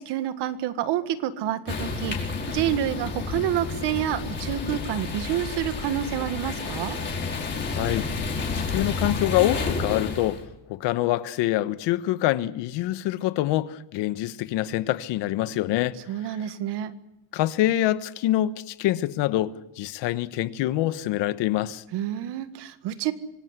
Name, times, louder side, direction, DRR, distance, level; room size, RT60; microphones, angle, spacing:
voice 1, 0.0-7.0 16.1-16.9 21.9-23.1, right 11 dB, 60° right, 1.8 m, -28 dB
sound 1, 1.7-10.4, left 4 dB, 25° left, 4.6 m, -30 dB
voice 2, 7.7-8.1 8.5-10.4 10.7-16.0 17.3-21.8, left 14 dB, 65° left, 1.3 m, -25 dB
26.0 x 18.5 x 8.1 m
cardioid pair, 160°, 47 cm